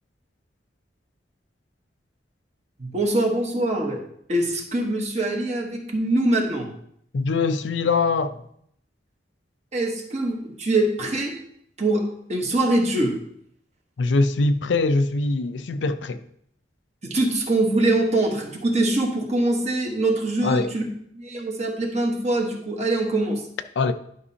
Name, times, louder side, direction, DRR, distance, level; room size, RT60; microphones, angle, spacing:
voice 1, 2.8-6.7 9.7-11.4 11.8-13.2 17.0-20.9 21.1-23.5, right 2 dB, 40° right, 1.2 m, -23 dB
voice 2, 7.1-8.4 14.0-16.2 20.4-20.7 23.8-23.9, left 3 dB, 85° left, 0.5 m, -22 dB
11.0 x 5.3 x 2.8 m
head